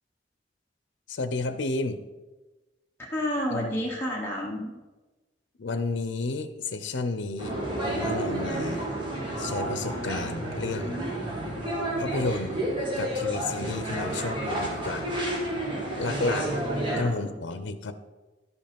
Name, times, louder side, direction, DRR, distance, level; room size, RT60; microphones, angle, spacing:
voice 1, 1.1-2.0 3.5-3.9 5.6-8.9 9.4-11.0 12.0-12.6 13.0-15.1 16.0-16.5 17.0-17.9, left 3 dB, 85° left, 11 dB, 0.6 m, -31 dB
voice 2, 3.0-4.7 16.9-17.3, equal, 15° left, -4 dB, 1.2 m, -30 dB
sound 1, 7.4-17.0, right 1 dB, 30° right, 2.4 m, -30 dB
11.0 x 5.5 x 5.2 m, 1.2 s
head